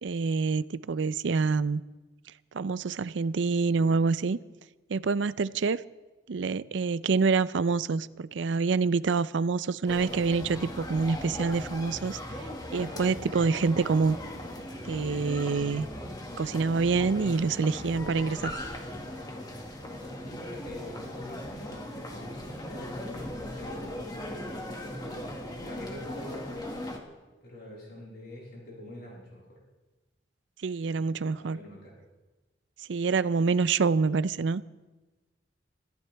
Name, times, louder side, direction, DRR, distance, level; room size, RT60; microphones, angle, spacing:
voice 1, 0.0-1.8 2.5-4.4 4.9-5.8 6.3-14.2 14.8-15.9 16.4-18.5 30.6-31.6 32.9-34.6, right 4 dB, 75° right, 17 dB, 0.5 m, -27 dB
sound 1, 9.9-27.0, left 1 dB, 20° left, 1.8 m, -38 dB
voice 2, 19.8-26.6 27.4-29.6 30.9-31.9, left 1 dB, 60° left, -4 dB, 7.6 m, -45 dB
26.5 x 15.0 x 3.4 m, 1.2 s
head